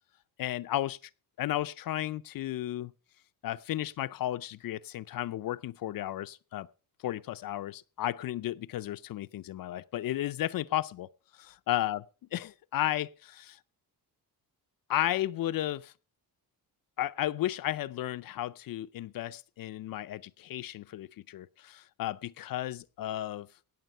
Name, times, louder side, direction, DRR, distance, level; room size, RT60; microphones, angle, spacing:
voice 1, 0.4-1.0 1.4-2.9 3.4-6.7 7.0-11.1 11.4-12.0 12.3-13.6 14.9-15.9 17.0-23.5, left 13 dB, 60° left, 0.5 m, -33 dB
17.0 x 7.2 x 5.5 m
cardioid pair, 105°, 39 cm